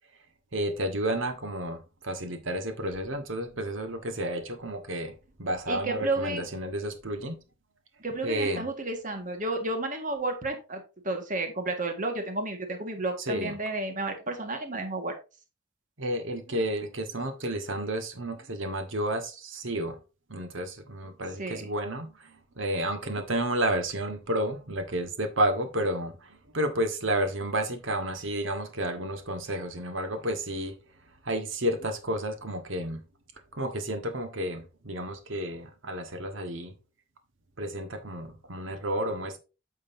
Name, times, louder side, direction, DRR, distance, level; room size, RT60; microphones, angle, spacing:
voice 1, 0.5-7.4 8.2-8.7 13.2-13.5 16.0-20.0 20.3-30.8 31.2-33.0 33.5-36.7 37.6-39.4, right 1 dB, 75° right, 1.5 m, -31 dB
voice 2, 5.7-6.4 8.0-15.2 21.4-21.7, right 2 dB, 40° right, 1.7 m, -32 dB
9.0 x 6.5 x 2.7 m
head